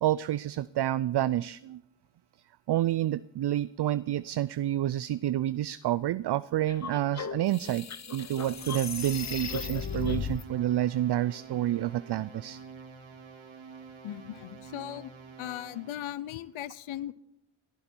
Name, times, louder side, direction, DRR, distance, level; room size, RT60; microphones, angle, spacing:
voice 1, 0.0-1.8 2.7-12.6, right 13 dB, 60° right, 18 dB, 0.5 m, -29 dB
sound 1, 6.7-10.4, left 6 dB, 35° left, 0.8 m, -36 dB
sound 2, 8.5-16.0, right 5 dB, 80° right, 2.8 m, -48 dB
voice 2, 14.0-15.1 15.4-17.1, left 12 dB, 85° left, 18 dB, 0.7 m, -38 dB
18.0 x 11.0 x 4.5 m, 0.82 s
cardioid pair, 55°, 47 cm